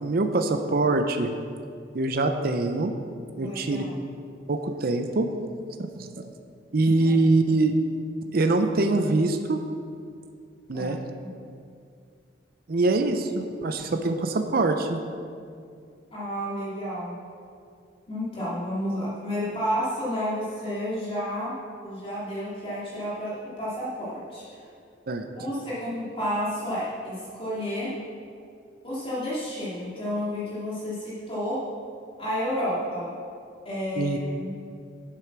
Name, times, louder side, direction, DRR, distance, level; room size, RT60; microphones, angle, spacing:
voice 1, 0.0-1.3 1.9-2.9 3.4-3.8 4.5-5.3 6.0-6.1 6.7-7.7 8.3-9.6 10.7-11.0 12.7-15.0 25.1-25.3 34.0-34.2, right 2 dB, 55° right, 6 dB, 0.6 m, -24 dB
voice 2, 3.4-4.0 7.0-7.5 10.7-11.3 16.1-17.2 18.1-21.6 21.8-24.4 25.3-27.9 28.8-31.6 32.2-33.1 33.6-34.5, equal, 30° left, -9 dB, 2.5 m, -31 dB
8.3 x 7.7 x 6.0 m, 2.3 s
head